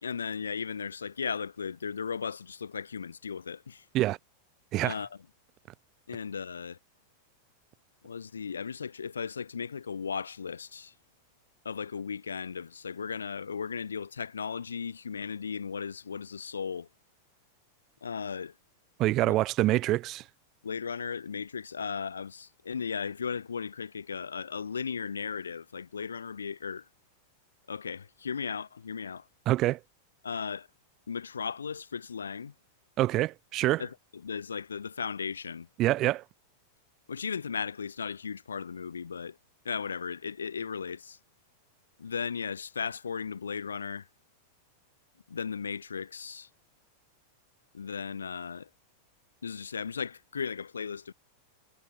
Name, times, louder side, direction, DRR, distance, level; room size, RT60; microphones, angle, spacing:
voice 1, 0.0-3.9 4.8-5.1 6.1-6.8 8.0-10.9 11.7-16.9 18.0-18.5 19.2-19.3 20.6-26.9 27.7-29.2 30.2-30.7 31.1-32.5 33.8-35.7 37.1-39.4 39.7-41.2 42.0-44.1 45.3-46.5 47.7-48.7 49.4-51.1, left 6 dB, 70° left, 3.6 m, -36 dB
voice 2, 19.0-20.2 29.5-29.8 33.0-33.8 35.8-36.2, right 16 dB, 35° right, 1.1 m, -26 dB
figure-of-eight pair, 90°, 0 cm